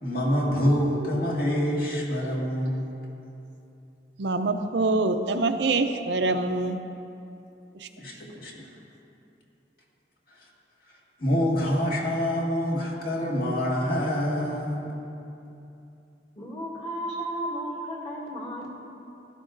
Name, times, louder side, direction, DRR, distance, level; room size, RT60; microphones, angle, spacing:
voice 1, 0.0-2.9 8.0-8.7 11.2-15.0, equal, 55° left, -3 dB, 1.9 m, -26 dB
voice 2, 4.2-6.8 7.8-7.9, right 3 dB, 75° right, 7 dB, 0.6 m, -25 dB
voice 3, 16.4-18.7, right 1 dB, 35° left, -5 dB, 2.3 m, -33 dB
16.5 x 12.0 x 2.6 m, 2.8 s
head